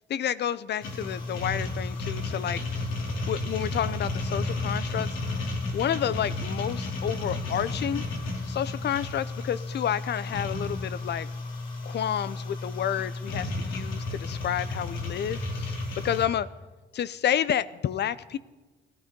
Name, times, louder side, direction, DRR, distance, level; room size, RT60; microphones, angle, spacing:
voice 1, 0.1-2.6 3.3-5.2 5.7-8.0 8.5-11.3 11.8-15.8 16.0-16.5 16.9-18.4, left 9 dB, 60° left, 17 dB, 0.7 m, -30 dB
sound 1, 0.8-16.3, left 2 dB, 90° left, 2.9 m, -33 dB
17.5 x 13.0 x 5.3 m, 1.2 s
cardioid pair, 90°, 20 cm